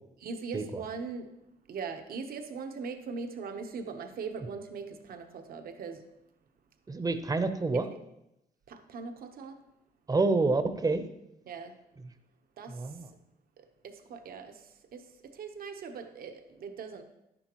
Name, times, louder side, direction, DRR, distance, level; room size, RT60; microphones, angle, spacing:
voice 1, 0.2-1.3 1.7-6.0 7.7-8.0 8.7-9.6 11.5-11.7 12.6-12.7 13.6-14.6 14.9-15.0 15.4-17.0, right 5 dB, 70° right, 6 dB, 1.0 m, -40 dB
voice 2, 6.9-7.9 10.1-11.0 12.7-13.1, right 3 dB, 25° right, 10 dB, 0.8 m, -28 dB
10.5 x 10.0 x 3.0 m, 0.87 s
cardioid pair, 105°, 16 cm